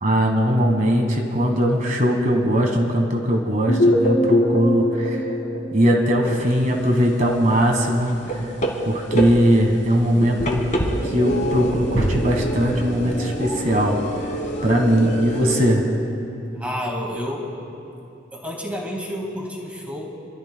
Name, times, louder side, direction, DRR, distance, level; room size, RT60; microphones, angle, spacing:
voice 1, 0.0-5.2 5.7-8.1 8.4-8.5 8.8-10.6 11.0-14.0 14.6-15.8, equal, 40° right, 2 dB, 1.5 m, -20 dB
sound 1, 3.7-6.6, left 1 dB, 70° left, 2.2 m, -21 dB
sound 2, 6.3-6.7 7.0-15.7, right 1 dB, 40° left, 1.4 m, -27 dB
sound 3, 12.0-13.8 14.1-14.2, right 1 dB, 90° right, 1.8 m, -29 dB
voice 2, 16.5-17.5 18.3-20.1, equal, 5° right, -2 dB, 1.9 m, -30 dB
29.0 x 13.5 x 2.2 m, 2.9 s
head